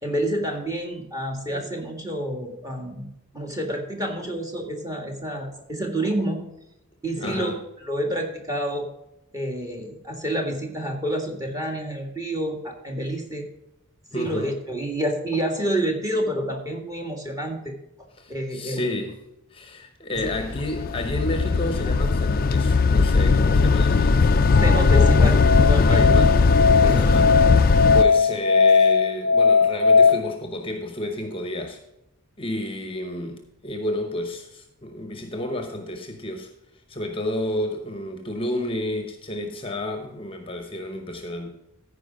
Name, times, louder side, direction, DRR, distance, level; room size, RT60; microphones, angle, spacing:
voice 1, 0.0-3.1 3.3-6.4 7.0-8.9 9.3-13.5 14.1-17.7 18.3-19.0 20.1-20.3 24.6-26.1 26.8-27.1, right 1 dB, 15° right, 2 dB, 1.7 m, -28 dB
voice 2, 7.2-7.6 14.1-14.5 18.2-19.1 19.5-24.4 25.9-26.4 27.0-27.3 27.6-31.8 32.4-36.5 36.9-41.5, left 1 dB, 25° left, 5 dB, 0.9 m, -31 dB
sound 1, 20.2-28.0, left 4 dB, 40° left, 0.4 m, -18 dB
Musical instrument, 24.4-30.1, left 5 dB, 80° right, 3.9 m, -18 dB
14.5 x 4.9 x 5.1 m, 0.89 s
head